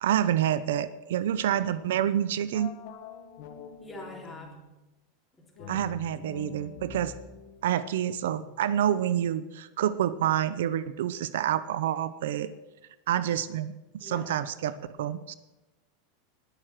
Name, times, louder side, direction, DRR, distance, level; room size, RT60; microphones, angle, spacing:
voice 1, 0.0-2.7 5.7-7.1 7.6-12.5 13.1-15.3, right 10 dB, 80° right, 15 dB, 0.6 m, -28 dB
sound 1, 2.5-4.8 5.5-8.9, left 7 dB, 65° left, 1.8 m, -46 dB
voice 2, 3.8-4.6 5.6-5.9 14.0-14.8, left 2 dB, 15° left, 0 dB, 3.8 m, -45 dB
20.5 x 6.8 x 6.1 m, 1.1 s
hypercardioid pair, 115°, 0 cm